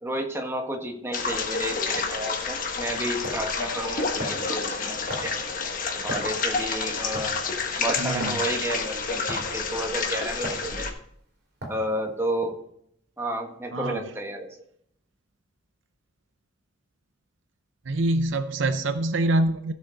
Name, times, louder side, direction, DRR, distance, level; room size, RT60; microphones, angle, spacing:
voice 1, 0.0-5.3 6.0-7.3 7.8-10.9 11.7-12.5 13.2-14.5, right 1 dB, 15° right, 2 dB, 1.6 m, -31 dB
sound 1, 1.1-10.9, left 4 dB, 45° left, 1.3 m, -29 dB
sound 2, 2.5-2.6 3.2-3.4 4.2-4.5 5.1-5.4 6.1-6.4 7.1-7.4 8.2-8.4 9.3-9.6 10.4-10.6 11.6-11.9, right 1 dB, 55° right, 3.2 m, -34 dB
voice 2, 8.0-8.4 13.7-14.1 17.8-19.7, right 2 dB, 70° right, 10 dB, 0.7 m, -25 dB
16.0 x 6.3 x 3.9 m, 0.69 s
head